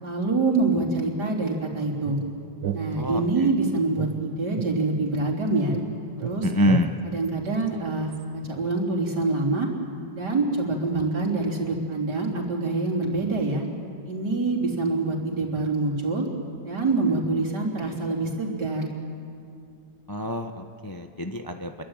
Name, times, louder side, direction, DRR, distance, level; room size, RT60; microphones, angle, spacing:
voice 1, 0.0-2.2 2.7-5.8 6.2-6.5 7.0-9.7 10.1-13.6 14.0-16.3 16.6-18.9, right 3 dB, 65° right, 0 dB, 4.3 m, -25 dB
sound 1, 2.0-3.5 4.0-5.4 5.7-8.2, right 9 dB, 90° right, 1.7 m, -35 dB
voice 2, 3.0-3.5 6.4-6.9 20.1-21.8, left 1 dB, 15° left, 5 dB, 0.8 m, -26 dB
29.0 x 23.0 x 9.0 m, 2.3 s
omnidirectional pair, 1.9 m